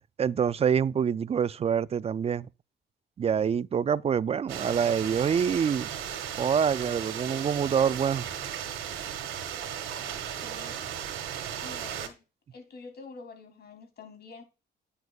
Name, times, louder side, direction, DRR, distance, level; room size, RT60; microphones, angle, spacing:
voice 1, 0.2-2.5 3.2-5.9 6.4-8.3, right 7 dB, 30° right, 0.4 m, -26 dB
sound 1, 4.5-12.1, right 9 dB, 90° right, 1.7 m, -36 dB
voice 2, 10.0-10.8 11.6-12.2 12.5-14.4, left 4 dB, 55° left, 3.0 m, -47 dB
9.4 x 7.7 x 2.3 m
cardioid pair, 90°, 20 cm